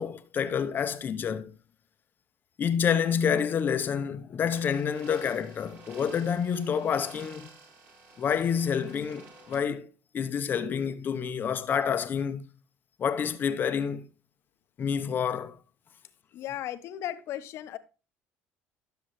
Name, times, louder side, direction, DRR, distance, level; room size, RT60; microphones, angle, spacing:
voice 1, 0.0-1.5 2.6-7.5 8.2-9.9 10.1-12.4 13.0-14.0 14.8-15.6, left 7 dB, 40° left, 0.9 m, -28 dB
sound 1, 4.5-9.5, right 3 dB, 50° right, 4.6 m, -51 dB
voice 2, 16.3-17.8, left 12 dB, 65° left, 1.0 m, -36 dB
12.5 x 7.1 x 3.2 m
cardioid pair, 110°, 5 cm